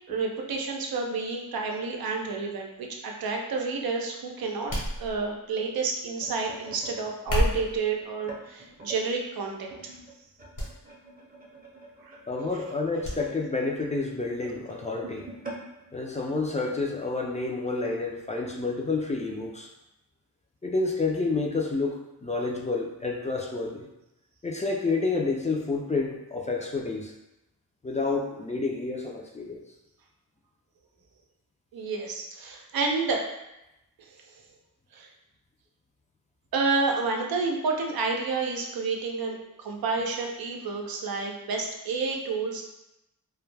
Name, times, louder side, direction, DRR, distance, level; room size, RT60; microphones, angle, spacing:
voice 1, 0.1-4.7 5.0-9.9 12.0-12.2 31.7-33.2 34.0-34.1 34.9-35.1 36.5-42.6, right 4 dB, 90° right, 1 dB, 0.5 m, -30 dB
sound 1, 4.7-5.5 7.1-7.8 8.6-9.0 9.4-9.6 10.5-10.7 11.0-11.1 13.0-13.2 13.6-13.7, left 1 dB, 65° left, 1.0 m, -29 dB
sound 2, 5.7-9.0 9.7-17.0 17.4-17.6 17.8-18.1 18.9-19.0, right 2 dB, 25° right, 0.6 m, -46 dB
voice 2, 12.3-15.3 15.9-19.7 20.6-23.9 24.4-27.1 27.8-29.6, left 3 dB, 20° left, 0 dB, 0.3 m, -29 dB
2.2 x 2.1 x 3.2 m, 0.90 s
wide cardioid pair, 80°, 35 cm